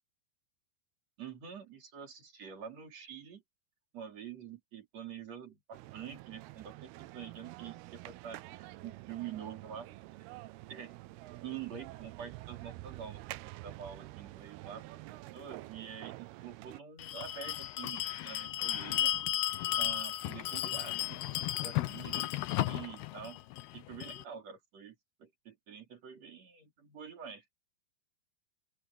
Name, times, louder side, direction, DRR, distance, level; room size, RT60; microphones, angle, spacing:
voice 1, 1.2-3.4 3.9-9.9 10.7-11.0 11.4-14.8 15.1-19.1 19.7-22.3 22.7-23.4 23.7-27.4, right 8 dB, 45° right, 4.2 m, -47 dB
sound 1, 5.7-16.8, right 19 dB, 85° right, 2.6 m, -48 dB
Bell, 17.0-24.2, left 14 dB, 80° left, 3.0 m, -34 dB
open air
omnidirectional pair, 4.5 m